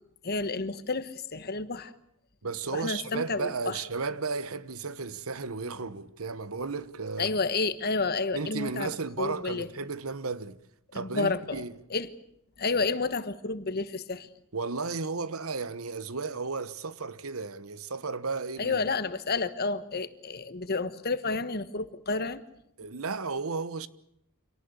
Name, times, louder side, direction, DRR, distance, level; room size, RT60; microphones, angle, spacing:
voice 1, 0.2-1.9 2.7-3.8 7.2-8.9 9.2-9.7 10.9-11.6 11.9-12.1 12.6-14.3 18.6-22.4, left 3 dB, 45° left, 1.4 m, -30 dB
voice 2, 2.4-7.3 8.3-10.6 10.9-11.7 14.5-18.8 22.8-23.9, right 4 dB, 75° right, 1.1 m, -34 dB
26.5 x 18.0 x 8.2 m
head